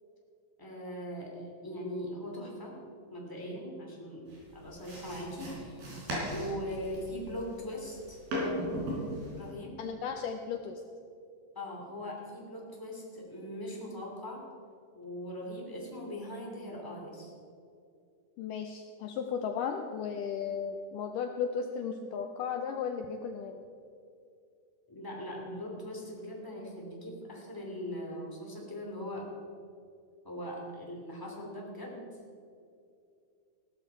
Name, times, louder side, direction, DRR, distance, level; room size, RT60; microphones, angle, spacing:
voice 1, 0.6-2.8 3.1-5.8 6.2-8.2 9.4-9.8 11.5-14.4 14.9-17.3 24.9-29.3 30.2-32.1, equal, 5° left, -2 dB, 2.0 m, -40 dB
sound 1, 4.3-9.5, equal, 65° right, 5.9 m, -37 dB
voice 2, 9.8-10.8 18.4-23.6, left 6 dB, 85° left, 5 dB, 1.9 m, -35 dB
16.5 x 12.5 x 4.7 m, 2.5 s
omnidirectional pair, 4.6 m